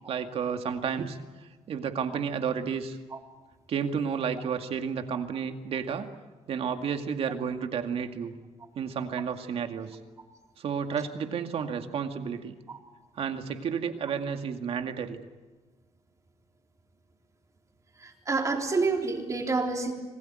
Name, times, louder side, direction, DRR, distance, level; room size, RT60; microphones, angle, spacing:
voice 1, 0.1-1.2 1.7-3.0 3.7-6.1 6.5-8.3 8.8-10.0 10.6-12.6 13.2-15.2, right 7 dB, 60° right, 6 dB, 2.2 m, -31 dB
voice 2, 18.0-19.9, right 3 dB, 30° right, 2 dB, 3.6 m, -28 dB
26.5 x 20.0 x 9.0 m, 1.2 s
cardioid pair, 125°, 11 cm